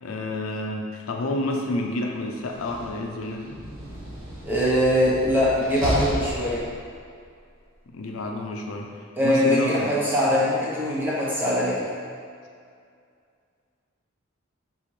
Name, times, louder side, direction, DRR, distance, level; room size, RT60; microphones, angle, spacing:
voice 1, 0.0-3.6 7.9-9.9, left 2 dB, 90° left, 2 dB, 0.5 m, -30 dB
Slam, 2.4-7.1, equal, 75° right, 1.0 m, -33 dB
voice 2, 4.5-6.7 9.2-11.9, equal, 10° right, -8 dB, 0.8 m, -22 dB
4.2 x 3.7 x 3.1 m, 2.3 s
head